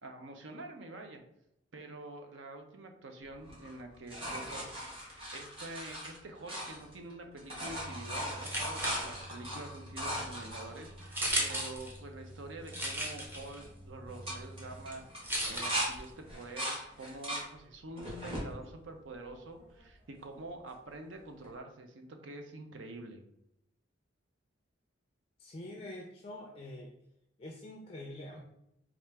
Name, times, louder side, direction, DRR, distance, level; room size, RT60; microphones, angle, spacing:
voice 1, 0.0-1.2 1.7-23.2, right 2 dB, 70° right, 4 dB, 0.6 m, -47 dB
sound 1, 3.4-7.1 7.4-11.7 12.3-12.4 12.6-13.1 13.3-13.7 14.1-15.9 16.3-17.5 18.0-18.5 19.1-19.8 21.4-21.5, equal, 30° right, 1.3 m, -39 dB
sound 2, 7.6-16.4, equal, 10° right, 0.6 m, -39 dB
voice 2, 25.4-26.9 27.4-28.4, left 1 dB, 30° left, 1 dB, 0.4 m, -45 dB
4.2 x 2.4 x 3.4 m, 0.81 s
head